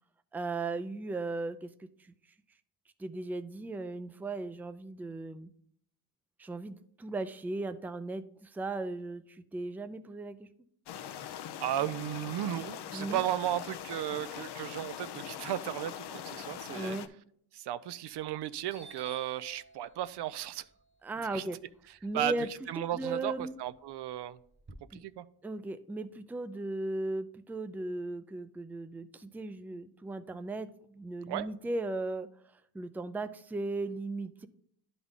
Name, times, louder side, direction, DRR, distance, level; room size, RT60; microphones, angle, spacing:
voice 1, 0.3-2.1 3.0-5.5 6.4-10.5 12.9-13.2 16.7-17.1 21.0-21.6 22.0-22.5 22.9-23.6 24.9-25.0 25.4-32.3 32.7-34.5, right 2 dB, 5° right, 11 dB, 0.3 m, -37 dB
sound 1, 10.9-17.1, left 10 dB, 70° left, 0.6 m, -42 dB
voice 2, 11.6-17.0 17.5-20.6 21.3-21.5 22.1-22.3 22.7-23.3 23.6-24.4 24.9-25.2 31.3-31.5, right 12 dB, 75° right, 15 dB, 0.5 m, -35 dB
Doorbell, 18.1-18.4 18.7-22.8 23.2-24.7, right 2 dB, 25° right, 1.1 m, -55 dB
11.0 x 4.0 x 3.6 m, 0.64 s
cardioid pair, 95°, 41 cm